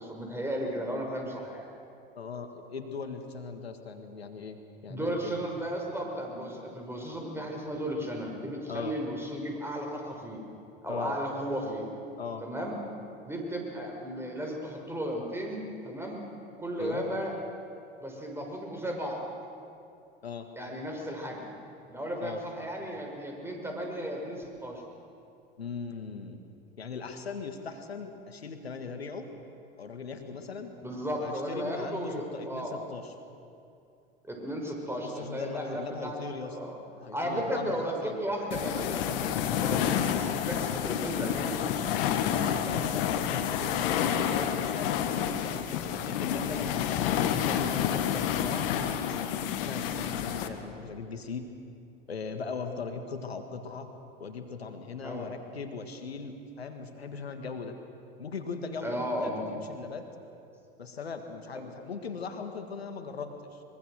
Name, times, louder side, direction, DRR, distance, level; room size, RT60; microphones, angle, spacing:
voice 1, 0.0-1.7 4.9-10.4 10.8-11.9 12.4-12.8 13.2-16.2 16.6-17.3 18.0-19.2 20.6-21.5 21.9-24.8 30.8-32.8 34.2-36.2 36.4-36.8 37.1-41.8 55.0-55.3 58.8-59.4, equal, 10° right, 0 dB, 5.9 m, -35 dB
voice 2, 2.1-5.3 8.7-8.9 10.9-11.1 12.2-12.4 16.8-17.1 20.2-20.5 22.2-22.4 25.6-26.4 26.8-29.3 29.8-30.7 31.2-33.1 35.0-36.7 37.0-38.2 42.3-45.7 46.0-49.3 49.6-51.5 52.1-53.9 54.2-57.7 58.2-60.0 60.8-63.6, left 5 dB, 90° left, 6 dB, 1.7 m, -39 dB
sound 1, 38.5-50.5, left 9 dB, 65° left, 1.7 m, -29 dB
23.5 x 23.0 x 6.6 m, 2.6 s
hypercardioid pair, 80°, 30 cm